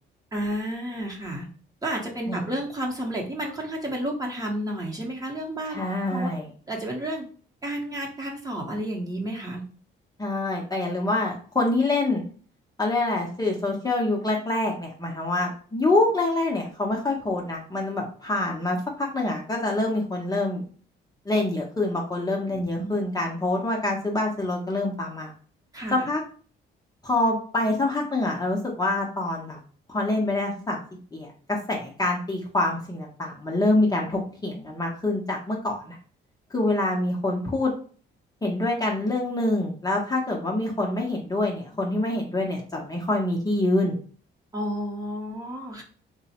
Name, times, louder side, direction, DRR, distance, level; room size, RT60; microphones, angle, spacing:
voice 1, 0.3-1.5 1.8-5.8 6.1-6.3 6.7-7.2 7.6-9.6 22.5-22.9 25.7-26.1 44.5-45.8, right 1 dB, 20° right, -1 dB, 0.8 m, -31 dB
voice 2, 5.7-6.5 10.2-12.2 12.8-20.6 21.3-25.3 25.9-26.2 27.0-29.6 29.9-30.8 31.1-36.0 36.5-37.7 38.4-43.9, left 2 dB, 20° left, -1 dB, 0.6 m, -26 dB
3.1 x 2.0 x 2.8 m, 0.42 s
cardioid pair, 90°, 20 cm